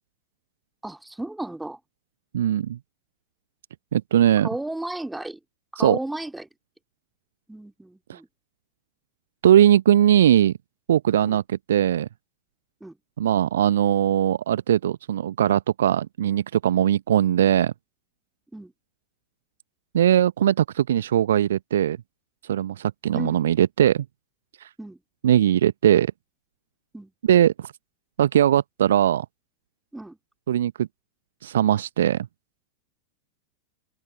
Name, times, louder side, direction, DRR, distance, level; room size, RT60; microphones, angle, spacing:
voice 1, 0.8-1.8 4.4-5.4 5.7-6.5 7.5-8.3 11.2-11.4 12.8-13.0 18.5-18.7 23.1-23.4 24.8-25.0 26.9-27.1 29.9-30.2, right 1 dB, 5° right, 3.0 m, -33 dB
voice 2, 2.3-2.8 3.9-4.5 5.8-6.0 8.1-8.2 9.4-10.5 10.9-11.4 11.7-12.1 13.2-17.7 19.9-22.0 22.5-24.0 25.2-26.1 27.3-27.5 28.2-29.2 30.5-30.9 31.4-32.2, right 10 dB, 60° right, 0.8 m, -20 dB
open air
figure-of-eight pair, 90°, 0 cm